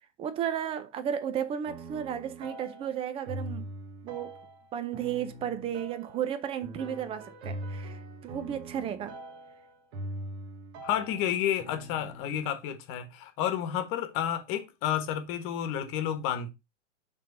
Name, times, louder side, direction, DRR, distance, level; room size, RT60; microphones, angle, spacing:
voice 1, 0.2-3.7 4.0-4.4 4.7-9.2, right 9 dB, 15° right, 0.5 m, -34 dB
sound 1, 1.7-12.4, right 1 dB, 55° right, 1.8 m, -42 dB
voice 2, 10.8-16.5, left 10 dB, 35° left, 1.3 m, -31 dB
6.2 x 3.9 x 5.3 m
hypercardioid pair, 135°, 38 cm